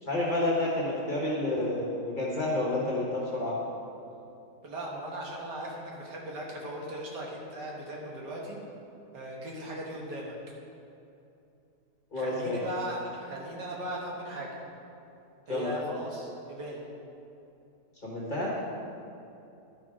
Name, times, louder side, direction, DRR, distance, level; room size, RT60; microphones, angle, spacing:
voice 1, 0.0-3.5 12.1-12.6 15.5-15.7 18.0-18.5, left 1 dB, 30° left, -5 dB, 1.6 m, -29 dB
voice 2, 4.6-8.6 9.1-10.3 12.1-14.6 15.5-16.9, right 1 dB, 90° right, -3 dB, 2.1 m, -38 dB
11.5 x 5.3 x 4.9 m, 2.8 s
omnidirectional pair, 1.8 m